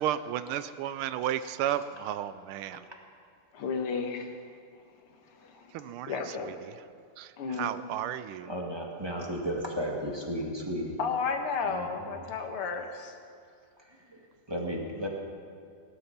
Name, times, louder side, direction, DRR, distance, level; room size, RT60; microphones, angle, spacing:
voice 1, 0.0-2.8 5.7-6.7 7.2-8.5, right 11 dB, 80° right, 13 dB, 1.5 m, -33 dB
voice 2, 3.5-4.4 5.4-5.6 6.1-6.5 7.4-7.7 11.0-13.1, left 5 dB, 90° left, 5 dB, 2.2 m, -32 dB
voice 3, 8.4-11.0 11.6-12.3 13.8-15.1, equal, 15° right, -1 dB, 1.6 m, -35 dB
17.5 x 12.0 x 5.9 m, 2.4 s
omnidirectional pair, 2.4 m